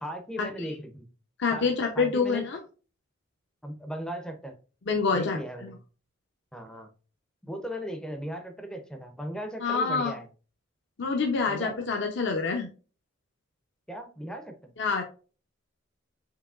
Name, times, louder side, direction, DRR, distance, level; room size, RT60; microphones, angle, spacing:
voice 1, 0.0-1.1 1.5-2.5 3.6-4.6 5.1-5.8 6.5-6.9 7.4-10.3 11.5-11.8 13.9-14.7, equal, 5° left, 5 dB, 0.5 m, -37 dB
voice 2, 1.4-2.6 4.9-5.7 9.6-10.2 11.0-12.7 14.8-15.0, left 4 dB, 60° left, 2 dB, 0.6 m, -27 dB
4.8 x 3.0 x 2.3 m, 0.37 s
head